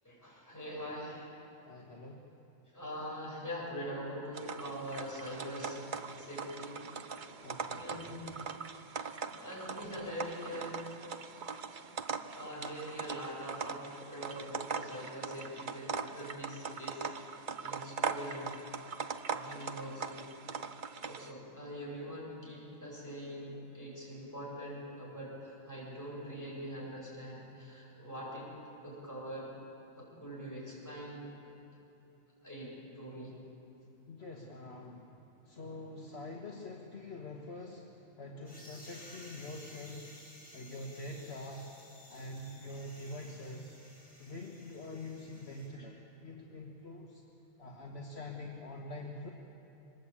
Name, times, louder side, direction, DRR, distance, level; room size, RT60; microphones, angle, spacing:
voice 1, 0.0-1.3 2.7-5.9 6.2-6.8 7.7-8.3 8.9-10.9 12.3-17.1 17.6-18.6 19.3-20.3 21.0-28.5 28.8-29.5 30.0-31.2 32.4-33.3 45.7-45.8, equal, 15° left, -5 dB, 7.9 m, -43 dB
voice 2, 1.6-2.3 7.4-7.8 34.1-35.2 35.4-37.9 38.2-40.2 40.5-41.7 42.1-43.7 44.2-47.2 47.6-49.3, left 2 dB, 50° left, 0 dB, 1.8 m, -45 dB
sound 1, 4.3-21.3, right 6 dB, 45° right, 0.8 m, -41 dB
sound 2, 38.5-45.7, equal, 15° right, 7.2 m, -55 dB
24.5 x 20.0 x 8.8 m, 2.9 s
omnidirectional pair, 1.4 m